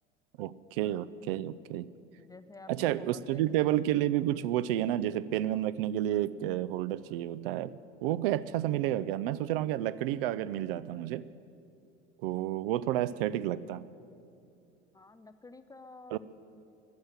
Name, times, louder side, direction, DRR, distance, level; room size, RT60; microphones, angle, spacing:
voice 1, 0.4-1.9 2.7-11.3 12.2-13.8 16.1-16.2, right 13 dB, 55° right, 17 dB, 0.6 m, -30 dB
voice 2, 2.2-3.4 14.9-16.2, left 3 dB, 10° left, 11 dB, 0.4 m, -51 dB
14.5 x 10.5 x 9.1 m, 2.5 s
figure-of-eight pair, 75°, 35 cm